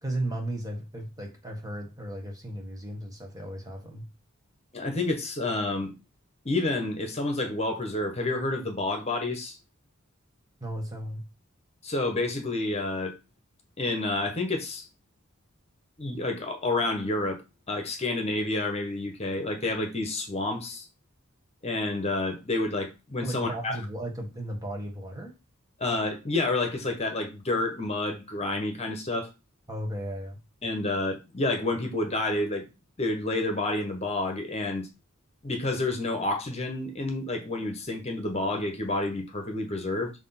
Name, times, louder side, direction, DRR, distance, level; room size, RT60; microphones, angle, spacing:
voice 1, 0.0-4.0 10.6-11.3 23.2-25.3 29.7-30.4, right 1 dB, 15° right, 1.6 m, -35 dB
voice 2, 4.7-5.9 6.4-9.6 11.8-13.1 13.8-14.8 16.0-17.4 17.7-20.8 21.6-23.7 25.8-29.3 30.6-32.6 33.0-34.9 35.4-40.1, left 2 dB, 30° left, 1.2 m, -29 dB
6.5 x 3.0 x 5.8 m
head